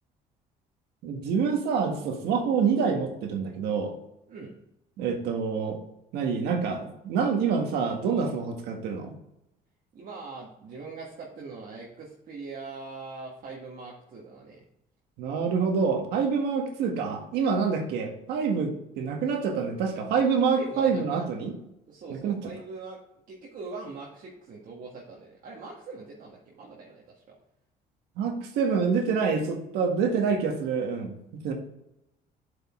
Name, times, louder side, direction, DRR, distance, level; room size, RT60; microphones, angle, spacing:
voice 1, 1.0-3.9 5.0-5.8 6.1-9.1 15.2-21.5 22.1-22.4 28.2-31.5, right 5 dB, 85° right, 4 dB, 1.6 m, -27 dB
voice 2, 9.9-14.6 20.5-21.2 21.9-23.0 23.3-27.2, right 4 dB, 55° right, -3 dB, 1.7 m, -42 dB
8.2 x 5.4 x 3.7 m, 0.84 s
cardioid pair, 105°, 17 cm